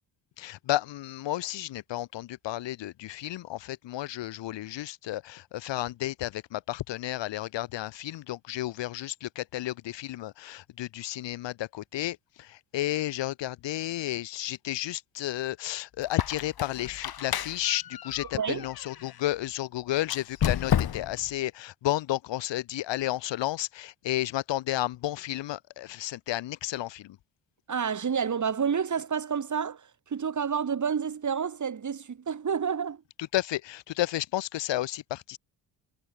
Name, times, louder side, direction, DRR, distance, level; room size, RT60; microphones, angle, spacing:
voice 1, 0.4-27.2 33.2-35.4, left 15 dB, 75° left, 2.5 m, -32 dB
Squeak, 16.0-19.2 20.0-21.3, left 9 dB, 55° left, 3.2 m, -31 dB
voice 2, 27.7-29.8 30.1-33.0, right 7 dB, 40° right, 3.8 m, -29 dB
cardioid pair, 80°, 44 cm